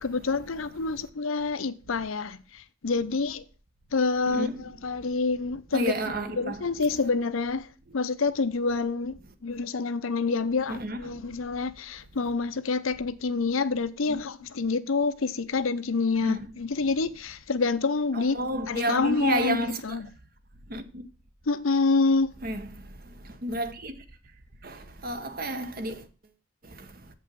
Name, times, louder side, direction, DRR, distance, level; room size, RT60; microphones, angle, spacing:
voice 1, 0.0-3.4 3.9-5.9 6.4-7.7 7.9-18.4 18.7-20.1 21.5-22.3, left 4 dB, 85° left, 0.7 m, -27 dB
voice 2, 4.3-4.6 5.7-6.7 10.7-11.3 14.1-14.3 16.2-16.5 18.1-20.0 20.7-21.0 22.4-22.8 23.2-23.9 24.6-26.0 26.7-26.9, right 1 dB, 45° right, 1.0 m, -32 dB
7.5 x 5.4 x 6.8 m
head